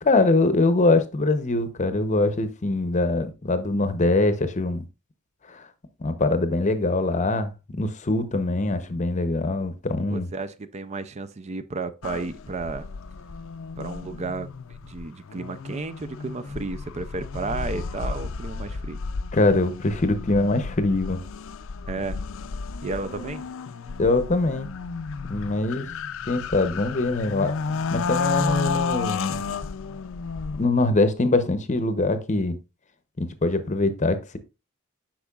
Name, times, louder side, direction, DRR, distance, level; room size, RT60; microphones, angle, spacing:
voice 1, 0.0-4.8 5.5-5.6 6.0-10.3 19.3-21.2 24.0-24.7 25.3-25.9 26.3-27.5 27.9-29.3 30.6-32.6 33.2-34.4, left 2 dB, 35° left, 0.7 m, -23 dB
voice 2, 10.1-12.9 13.8-14.5 14.8-19.0 21.9-22.2 22.8-23.5, right 3 dB, 30° right, 0.4 m, -33 dB
sound 1, 12.0-30.6, left 4 dB, 65° left, 0.5 m, -32 dB
8.3 x 6.1 x 2.4 m
head